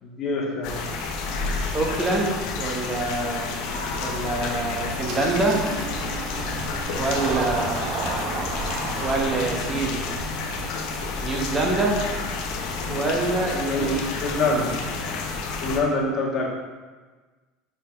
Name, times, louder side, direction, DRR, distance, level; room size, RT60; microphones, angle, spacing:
voice 1, 0.0-0.8 13.7-14.8 15.6-16.5, left 3 dB, 45° left, -2 dB, 1.6 m, -25 dB
sound 1, 0.6-15.8, left 3 dB, 65° left, 0.8 m, -30 dB
voice 2, 1.7-3.5 4.0-5.6 6.9-7.9 9.0-10.0 11.2-12.0 12.9-14.0, right 2 dB, 25° right, -1 dB, 1.4 m, -25 dB
Engine starting, 5.1-12.4, right 3 dB, 60° right, 1.1 m, -34 dB
5.5 x 4.4 x 4.7 m, 1.3 s
hypercardioid pair, 90°, 0 cm